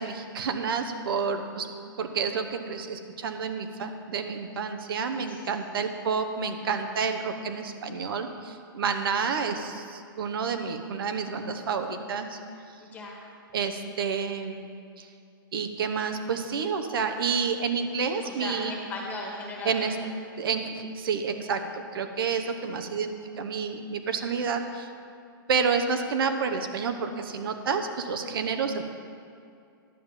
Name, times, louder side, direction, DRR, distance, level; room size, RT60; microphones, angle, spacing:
voice 1, 0.0-1.7 2.0-12.4 13.5-14.7 15.0-15.1 15.5-18.7 19.6-20.0 20.4-24.9 25.5-28.8, right 5 dB, 75° right, 6 dB, 1.0 m, -29 dB
voice 2, 5.2-5.5 12.8-13.3 18.2-19.9, left 2 dB, 15° left, -2 dB, 1.6 m, -37 dB
11.0 x 5.4 x 7.4 m, 2.4 s
hypercardioid pair, 160°, 12 cm